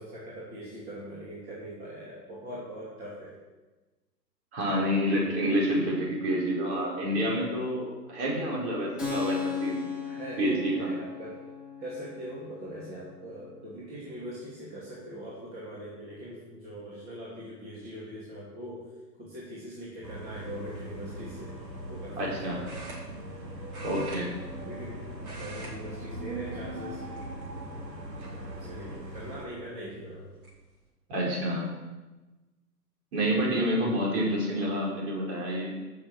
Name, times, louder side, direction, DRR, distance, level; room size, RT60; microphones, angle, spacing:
voice 1, 0.0-3.4 4.8-5.5 10.0-11.4 11.8-18.9 19.2-21.6 21.9-22.8 24.5-25.0 25.4-27.0 27.5-27.9 28.5-30.4, right 1 dB, 20° right, -7 dB, 2.7 m, -42 dB
voice 2, 4.5-9.8 10.4-10.9 22.2-22.6 23.8-24.3 31.1-31.7 33.1-35.7, equal, 40° right, -3 dB, 5.3 m, -28 dB
Keyboard (musical), 9.0-16.3, left 6 dB, ahead, 3.1 m, -38 dB
sound 1, 20.0-29.5, right 1 dB, 80° right, 2.5 m, -40 dB
sound 2, 20.7-21.0 22.6-23.4 23.7-24.9 25.2-25.8 26.1-26.3 27.1-27.6 28.2-28.3 29.7-29.8 30.2-30.5, right 2 dB, 60° right, 4.7 m, -45 dB
15.0 x 6.6 x 6.5 m, 1.2 s
figure-of-eight pair, 130°, 50 cm